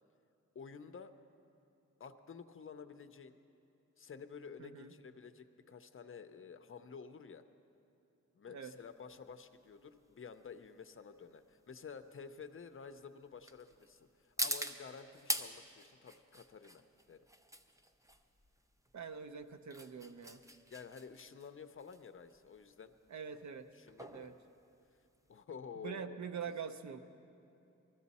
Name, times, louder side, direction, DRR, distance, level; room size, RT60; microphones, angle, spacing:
voice 1, 0.5-1.1 2.0-3.4 4.0-7.4 8.3-17.3 20.7-22.9 23.7-24.3 25.3-26.2, left 6 dB, 45° left, 9 dB, 0.5 m, -51 dB
voice 2, 4.6-4.9 8.5-8.7 18.9-20.4 23.1-23.7 24.1-24.3 25.8-27.0, right 6 dB, 75° right, 8 dB, 0.7 m, -44 dB
sound 1, 8.8-25.4, right 1 dB, 10° right, 0.5 m, -45 dB
19.5 x 13.5 x 4.1 m, 2.8 s
wide cardioid pair, 175°, 29 cm